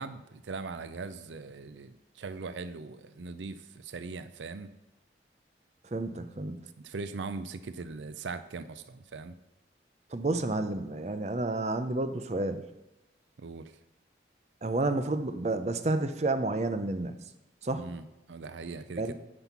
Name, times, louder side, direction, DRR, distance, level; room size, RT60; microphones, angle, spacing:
voice 1, 0.0-4.7 6.8-9.3 13.4-13.7 17.8-19.1, right 4 dB, 85° right, 12 dB, 0.5 m, -40 dB
voice 2, 5.9-6.6 10.1-12.6 14.6-17.2 17.6-17.8 19.0-19.1, right 2 dB, 35° right, 9 dB, 0.6 m, -30 dB
9.8 x 5.5 x 5.9 m, 0.99 s
head